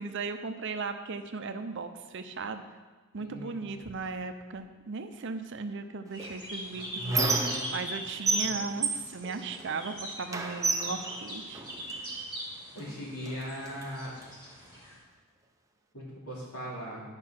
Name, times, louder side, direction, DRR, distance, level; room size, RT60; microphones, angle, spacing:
voice 1, 0.0-2.6 3.1-11.6, right 4 dB, 55° right, 8 dB, 0.6 m, -37 dB
voice 2, 3.1-3.6 12.7-14.1 15.9-17.0, equal, 75° left, -4 dB, 2.9 m, -39 dB
sound 1, 6.1-15.0, equal, 20° left, 2.6 m, -42 dB
Squeak, 6.2-8.0 8.3-9.9 10.3-12.0 12.8-12.9 13.2-14.3, right 3 dB, 15° right, 0.6 m, -31 dB
10.5 x 5.3 x 5.7 m, 1.3 s
head